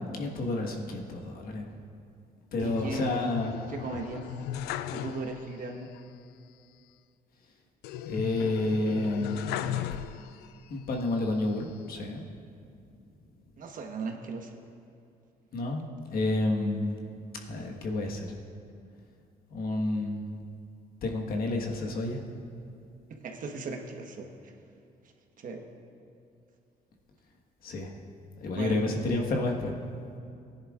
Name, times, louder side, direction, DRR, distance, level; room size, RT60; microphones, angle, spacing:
voice 1, 0.0-1.8 2.5-3.6 8.1-9.6 10.7-12.2 15.5-15.8 16.1-17.2 17.4-18.4 19.5-20.3 21.0-22.3 27.6-27.9 28.4-29.9, left 2 dB, 65° left, 0 dB, 1.5 m, -30 dB
sound 1, 2.6-5.6 5.9-6.0 7.8-10.6 11.1-11.9, left 11 dB, 85° left, 0.4 m, -37 dB
voice 2, 2.6-3.3 3.7-4.4 4.9-5.9 13.6-14.5 23.1-24.5 25.4-25.6 28.5-28.8, right 3 dB, 55° right, 3 dB, 1.3 m, -37 dB
16.0 x 10.5 x 2.5 m, 2.5 s
supercardioid pair, 70°, 16 cm